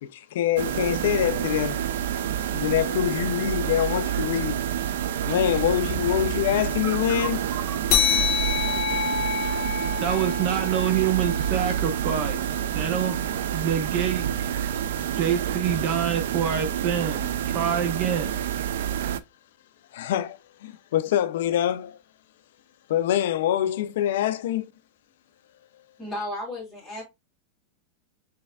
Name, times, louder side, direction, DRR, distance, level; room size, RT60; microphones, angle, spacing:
voice 1, 0.0-1.8 2.5-4.6 5.2-7.4 19.9-22.0 22.9-24.7, left 11 dB, 75° left, 0.3 m, -25 dB
sound 1, 0.6-19.2, right 10 dB, 80° right, 0.4 m, -28 dB
sound 2, 7.9-12.8, left 7 dB, 40° left, 0.9 m, -28 dB
voice 2, 10.0-13.2 13.5-14.3 15.1-18.3, right 8 dB, 40° right, 0.7 m, -26 dB
voice 3, 26.0-27.0, left 1 dB, 5° left, 2.1 m, -34 dB
5.5 x 3.3 x 2.3 m
supercardioid pair, 160°, 0 cm